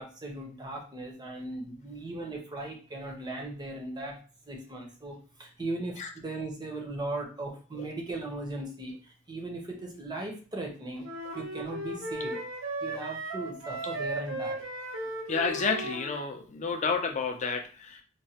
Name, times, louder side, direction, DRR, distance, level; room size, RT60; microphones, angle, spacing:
voice 1, 0.0-4.2 4.5-11.1 11.3-12.4 12.8-14.6, right 2 dB, 20° right, 1 dB, 0.6 m, -38 dB
sound 1, 11.0-16.2, right 1 dB, 70° right, 0.7 m, -36 dB
voice 2, 15.3-18.0, left 4 dB, 35° left, 4 dB, 0.4 m, -30 dB
3.0 x 2.1 x 2.7 m, 0.38 s
head